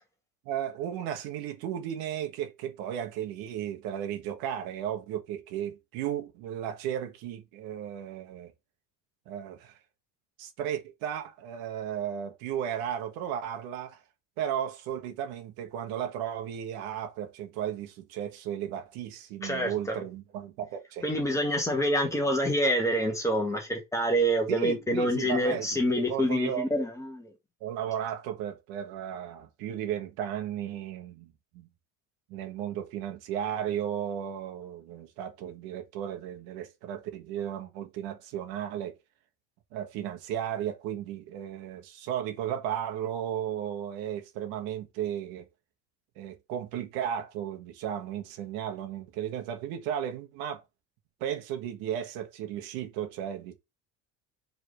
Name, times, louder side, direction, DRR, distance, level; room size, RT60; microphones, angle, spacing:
voice 1, 0.4-8.5 9.3-9.8 10.4-14.0 14.4-21.2 24.5-26.7 27.6-31.7 32.3-39.0 39.7-45.5 46.2-50.6 51.2-53.5, right 10 dB, 85° right, 1.5 m, -35 dB
voice 2, 19.4-20.0 21.0-27.3, equal, 10° left, 1.8 m, -27 dB
4.8 x 4.0 x 5.0 m
cardioid pair, 160°, 35 cm